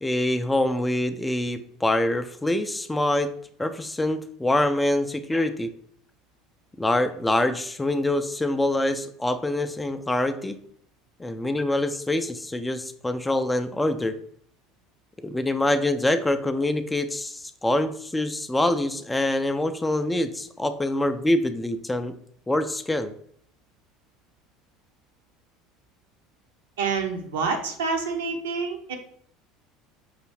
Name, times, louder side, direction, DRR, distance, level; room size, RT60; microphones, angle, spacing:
voice 1, 0.0-3.3 3.6-5.7 6.8-10.6 11.2-14.2 15.2-22.1 22.5-23.1, left 1 dB, 10° left, 10 dB, 0.3 m, -25 dB
voice 2, 26.8-29.0, right 4 dB, 70° right, 4 dB, 0.6 m, -27 dB
5.5 x 2.7 x 3.1 m, 0.63 s
figure-of-eight pair, 70°, 0 cm